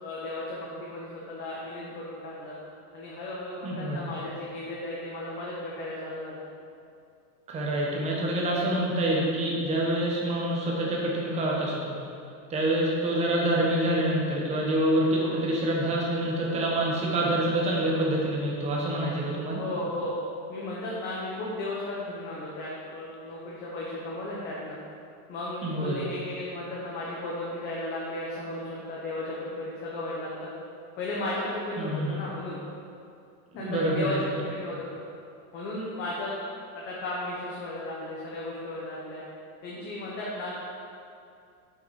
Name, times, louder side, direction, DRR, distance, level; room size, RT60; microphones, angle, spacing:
voice 1, 0.0-2.5 2.9-6.4 19.5-20.1 20.5-24.8 25.3-30.5 31.0-32.6 33.5-35.0 35.5-36.3 36.7-39.2 39.6-40.6, left 1 dB, 25° left, -5 dB, 0.9 m, -35 dB
voice 2, 3.6-4.0 7.5-12.0 12.5-19.6 25.6-26.0 31.8-32.2 33.5-34.4, right 1 dB, 15° right, -3 dB, 1.0 m, -26 dB
6.9 x 5.9 x 4.8 m, 2.4 s
supercardioid pair, 170°, 44 cm